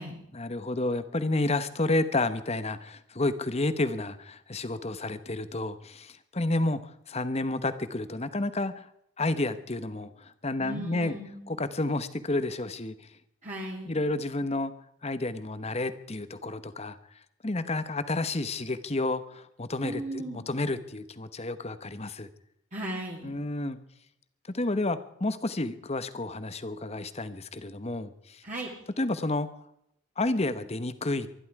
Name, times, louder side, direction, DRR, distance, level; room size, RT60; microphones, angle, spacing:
voice 1, 0.3-8.9 9.2-11.1 11.5-13.1 13.9-14.7 15.0-17.0 17.4-22.3 23.2-23.8 24.5-28.4 29.0-29.5 30.2-31.3, left 2 dB, 30° left, 1.0 m, -30 dB
voice 2, 10.6-11.6 13.4-14.0 19.8-20.4 22.7-23.3 28.4-28.7, right 1 dB, 35° right, 2.5 m, -37 dB
24.0 x 11.5 x 4.8 m
head